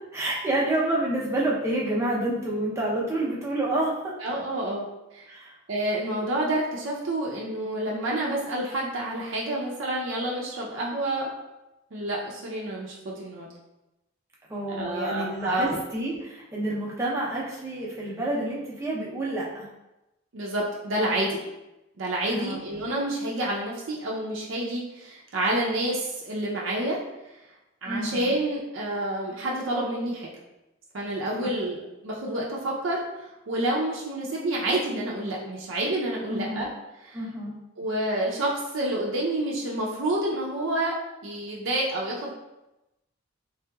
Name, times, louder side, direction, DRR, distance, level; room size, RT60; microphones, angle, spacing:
voice 1, 0.1-4.1 5.3-5.5 14.5-19.7 22.3-22.7 27.9-28.3 36.3-36.6 37.1-37.6, right 1 dB, 15° right, -5 dB, 0.6 m, -28 dB
voice 2, 4.2-4.9 5.1-5.3 5.7-11.3 11.9-13.5 14.7-15.7 20.3-21.4 22.0-27.0 27.8-30.3 30.9-36.7 37.0-37.2 37.8-40.9 41.2-42.3, right 1 dB, 70° right, -4 dB, 0.5 m, -28 dB
3.3 x 2.8 x 2.3 m, 0.96 s
head